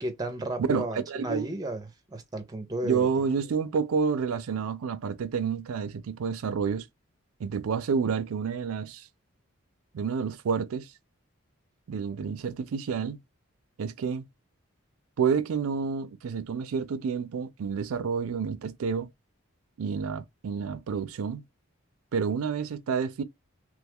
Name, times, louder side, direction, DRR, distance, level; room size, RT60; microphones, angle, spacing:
voice 1, 0.0-3.1, right 1 dB, 15° right, 0.5 m, -33 dB
voice 2, 0.6-1.5 2.8-6.9 7.4-9.1 9.9-10.9 11.9-13.2 13.8-14.3 15.2-19.1 19.8-21.4 22.1-23.2, right 6 dB, 80° right, 0.4 m, -29 dB
3.1 x 2.3 x 3.5 m
head